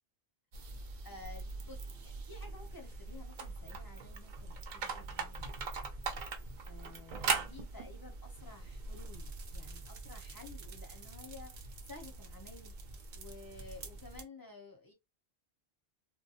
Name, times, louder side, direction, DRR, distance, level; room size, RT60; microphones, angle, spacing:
sound 1, 0.5-14.2, right 4 dB, 55° right, 0.5 m, -42 dB
voice 1, 1.0-5.8 6.7-11.5 11.9-12.7 13.1-14.9, left 3 dB, 30° left, 0.5 m, -53 dB
2.2 x 2.1 x 2.7 m
omnidirectional pair, 1.2 m